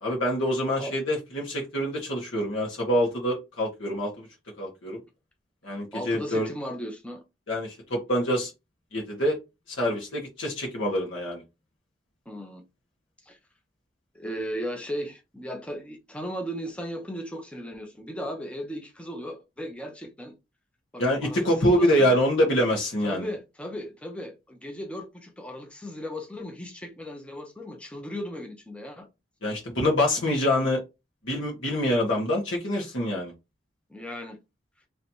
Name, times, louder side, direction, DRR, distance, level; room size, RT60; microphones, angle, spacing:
voice 1, 0.0-4.3 4.6-5.0 5.6-6.5 7.5-8.5 8.9-9.4 9.7-11.4 21.0-23.3 29.4-30.8 31.2-33.3, equal, 85° left, 1.4 m, -25 dB
voice 2, 5.9-7.2 12.3-12.6 13.2-13.4 14.1-20.3 20.9-22.2 23.0-29.1 33.9-34.4, equal, 5° left, 0.6 m, -36 dB
3.2 x 2.8 x 4.4 m
head